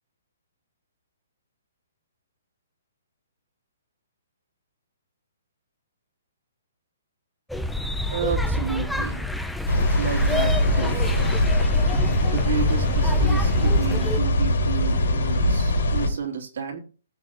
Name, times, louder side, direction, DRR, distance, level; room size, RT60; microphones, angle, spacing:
sound 1, 7.5-14.2, left 1 dB, ahead, 0.8 m, -28 dB
voice 1, 8.1-9.2 9.9-11.1 12.2-16.8, right 6 dB, 70° right, 1 dB, 3.2 m, -31 dB
sound 2, 9.7-16.1, left 1 dB, 85° left, 3.5 m, -22 dB
18.0 x 7.3 x 3.1 m, 0.38 s
hypercardioid pair, 150°, 0 cm